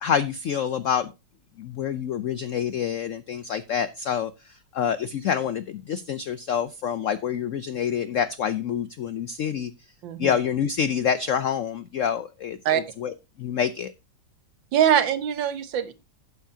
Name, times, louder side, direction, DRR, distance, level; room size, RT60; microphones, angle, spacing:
voice 1, 0.0-1.1 1.6-9.7 10.2-13.9, left 8 dB, 90° left, 13 dB, 0.6 m, -27 dB
voice 2, 10.0-10.4 12.6-12.8 14.7-15.9, right 9 dB, 80° right, 12 dB, 1.7 m, -22 dB
12.0 x 8.2 x 2.7 m, 0.25 s
omnidirectional pair, 2.0 m